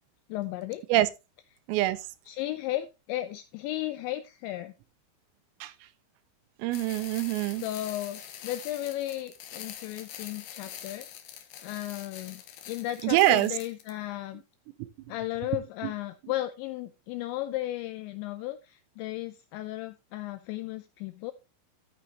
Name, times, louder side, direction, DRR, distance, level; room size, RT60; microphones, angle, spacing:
voice 1, 0.3-0.8 2.3-4.7 7.6-11.1 11.6-14.4 15.1-21.3, left 15 dB, 90° left, 2.6 m, -35 dB
voice 2, 1.7-2.0 5.6-5.7 6.6-7.6 13.0-13.5 14.8-14.9 15.8-15.9, right 15 dB, 85° right, 3.5 m, -24 dB
sound 1, 6.7-13.9, left 10 dB, 70° left, 2.7 m, -44 dB
13.0 x 6.9 x 2.9 m
omnidirectional pair, 5.9 m